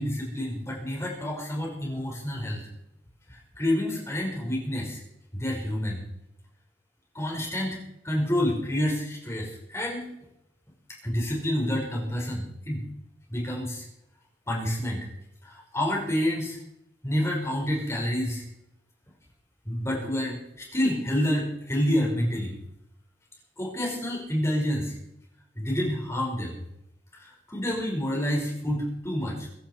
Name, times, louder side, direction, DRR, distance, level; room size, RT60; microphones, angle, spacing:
voice 1, 0.0-2.6 3.3-5.0 5.3-6.1 7.1-7.8 8.0-10.1 11.0-12.8 13.3-13.8 14.5-15.1 15.4-16.6 17.0-18.4 19.7-22.5 23.6-24.9 25.6-26.6 27.1-29.5, left 1 dB, 15° left, -2 dB, 5.4 m, -28 dB
23.5 x 11.5 x 4.6 m, 0.82 s
head